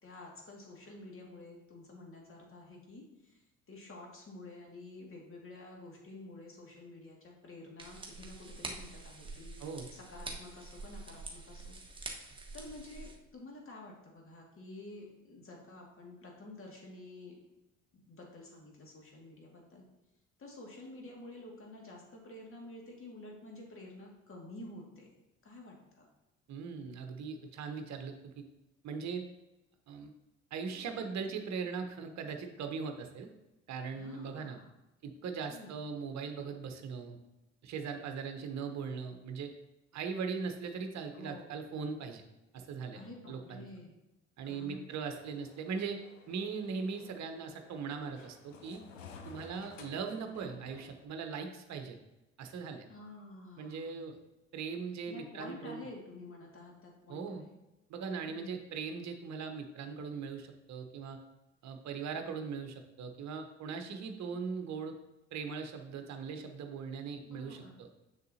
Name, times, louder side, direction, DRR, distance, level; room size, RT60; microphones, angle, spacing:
voice 1, 0.0-3.4 3.7-9.5 9.9-11.8 12.5-17.3 17.9-19.8 20.4-25.1 25.4-26.1 34.0-34.7 35.5-35.7 41.1-41.6 42.9-44.0 44.4-45.0 52.9-53.9 55.1-57.5 58.3-58.7 67.2-67.7, left 2 dB, 35° left, -1 dB, 2.2 m, -50 dB
sound 1, 7.8-13.2, right 3 dB, 15° right, 1.3 m, -46 dB
voice 2, 26.5-28.3 28.8-29.2 29.9-30.1 30.5-33.3 33.7-34.6 35.0-37.2 37.6-39.5 39.9-42.2 42.5-43.0 43.3-43.7 44.4-46.0 46.3-48.8 49.2-52.0 52.4-52.9 53.6-54.2 54.5-55.9 57.1-57.4 57.9-61.2 61.6-64.9 65.3-67.9, right 5 dB, 45° right, 6 dB, 1.0 m, -40 dB
sound 2, 45.2-51.1, left 5 dB, 80° left, 0.7 m, -54 dB
7.1 x 6.5 x 2.8 m, 0.99 s
figure-of-eight pair, 50°, 37 cm